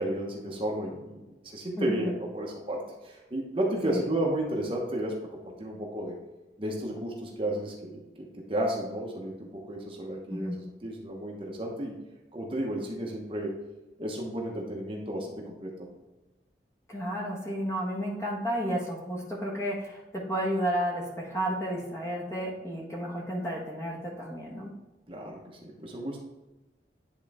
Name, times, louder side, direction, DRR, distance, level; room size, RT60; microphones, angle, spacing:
voice 1, 0.0-6.2 6.6-12.0 12.3-13.6 14.0-16.0 25.1-26.2, right 1 dB, 30° right, -1 dB, 1.0 m, -33 dB
voice 2, 1.8-2.2 3.8-4.0 10.3-10.6 16.9-24.7, equal, 15° left, -2 dB, 1.4 m, -32 dB
10.0 x 3.8 x 3.6 m, 1.1 s
head